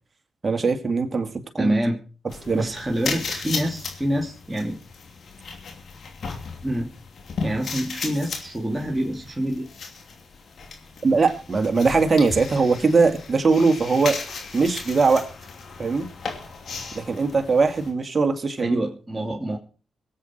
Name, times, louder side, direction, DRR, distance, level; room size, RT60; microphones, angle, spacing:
voice 1, 0.4-1.7 2.5-2.7 11.0-14.2 14.5-15.3 15.8-16.1 16.9-18.8, right 4 dB, 40° right, 5 dB, 2.3 m, -21 dB
voice 2, 1.6-2.0 2.5-4.8 6.6-6.9 7.4-9.7 18.6-19.6, right 1 dB, 15° right, -1 dB, 2.8 m, -26 dB
sound 1, 2.3-17.9, left 4 dB, 65° left, 2.8 m, -36 dB
23.5 x 8.2 x 4.5 m, 0.37 s
supercardioid pair, 45°, 0 cm